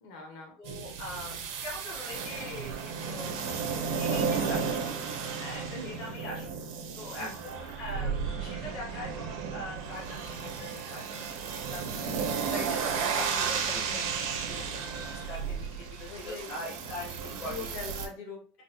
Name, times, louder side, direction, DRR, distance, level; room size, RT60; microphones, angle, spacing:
voice 1, 0.0-0.5 5.7-6.0 7.2-7.4 13.7-14.1 16.1-16.7 17.3-18.6, left 3 dB, 55° left, 1 dB, 1.1 m, -43 dB
voice 2, 0.6-3.5 3.9-5.0 5.4-6.5 6.9-11.3 11.7-12.2 12.5-14.0 14.5-17.7, left 1 dB, 30° left, -5 dB, 0.8 m, -42 dB
sound 1, 0.6-18.1, right 6 dB, 60° right, 0.6 m, -34 dB
3.8 x 2.0 x 2.9 m, 0.41 s
supercardioid pair, 180°, 0 cm